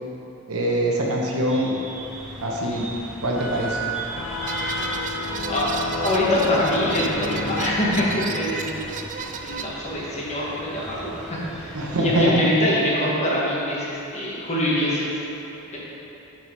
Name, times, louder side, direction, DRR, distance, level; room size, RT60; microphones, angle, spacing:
voice 1, 0.5-1.7 2.4-2.9 3.2-3.8 11.7-12.3, right 1 dB, 85° right, -2 dB, 1.0 m, -23 dB
sound 1, 1.3-12.2, right 2 dB, ahead, 1.3 m, -36 dB
sound 2, 4.1-9.0, left 4 dB, 60° left, 0.5 m, -32 dB
sound 3, 4.5-9.6, right 5 dB, 35° right, 0.3 m, -33 dB
voice 2, 6.0-8.8 9.4-15.2 15.7-15.8, left 1 dB, 30° left, -6 dB, 1.4 m, -24 dB
5.9 x 5.9 x 4.6 m, 3.0 s
head